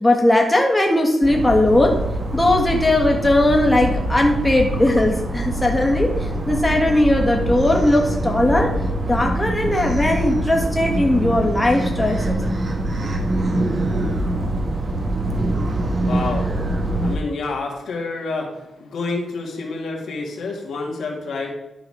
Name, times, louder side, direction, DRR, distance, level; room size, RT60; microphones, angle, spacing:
voice 1, 0.0-2.0 2.3-8.7 9.1-12.4, left 1 dB, 15° left, 1 dB, 1.5 m, -18 dB
sound 1, 1.2-17.2, right 1 dB, 50° right, 1.4 m, -24 dB
voice 2, 15.9-21.5, left 3 dB, 85° left, -1 dB, 2.0 m, -29 dB
11.5 x 4.0 x 4.9 m, 0.99 s
cardioid pair, 80°, 0 cm